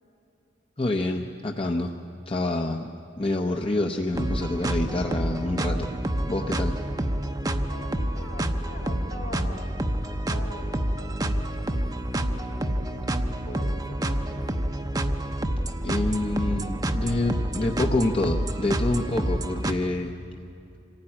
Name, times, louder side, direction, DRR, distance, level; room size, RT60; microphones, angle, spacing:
voice 1, 0.8-2.0 2.3-2.9 3.2-5.9 6.2-6.7 15.8-20.2, left 2 dB, 30° left, 2 dB, 0.8 m, -27 dB
sound 1, 4.1-19.7, right 1 dB, 20° right, 0.8 m, -28 dB
voice 2, 7.7-11.8 12.5-14.4, left 2 dB, 60° left, 5 dB, 2.2 m, -44 dB
25.5 x 16.0 x 9.9 m, 2.8 s
head